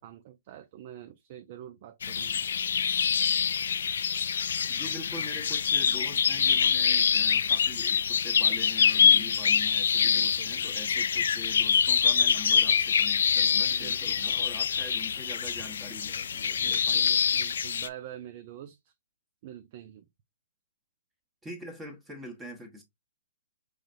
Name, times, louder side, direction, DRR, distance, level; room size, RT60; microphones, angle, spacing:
voice 1, 0.0-2.4 9.0-9.6 10.0-10.7 13.7-14.2 16.6-18.9 19.4-20.1, right 11 dB, 45° right, 0.5 m, -46 dB
sound 1, 2.0-17.9, left 7 dB, 70° left, 0.4 m, -25 dB
voice 2, 4.7-17.2 21.4-22.8, left 1 dB, 10° right, 1.1 m, -44 dB
4.8 x 3.2 x 2.6 m
hypercardioid pair, 140°, 0 cm